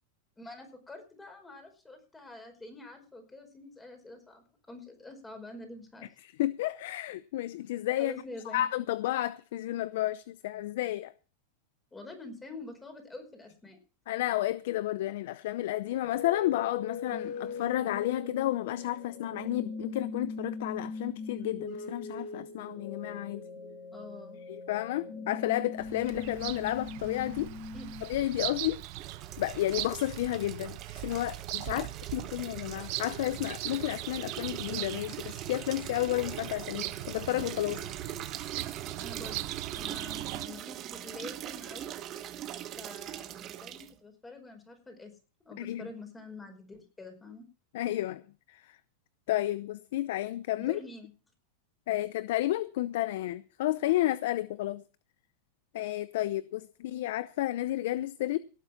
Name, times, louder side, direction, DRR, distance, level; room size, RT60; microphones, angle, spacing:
voice 1, 0.4-6.1 8.0-8.6 11.9-13.8 23.9-24.4 27.7-27.8 31.7-31.9 39.0-41.9 42.8-45.2 45.4-47.5 50.6-51.1, left 2 dB, 10° left, 5.0 m, -46 dB
voice 2, 6.2-8.1 8.5-11.1 14.1-23.4 24.5-27.5 28.0-28.8 29.4-31.9 32.1-37.8 45.6-45.9 47.7-48.2 48.5-48.8 49.3-50.8 51.9-54.8 55.7-58.4, left 15 dB, 70° left, 0.6 m, -31 dB
sound 1, 16.0-28.0, left 4 dB, 50° left, 5.2 m, -40 dB
Bird vocalization bird call bird song, 25.8-40.5, right 18 dB, 55° right, 0.9 m, -40 dB
sound 2, 28.8-43.9, right 11 dB, 35° right, 1.4 m, -42 dB
18.0 x 8.1 x 5.9 m
supercardioid pair, 135°, 0 cm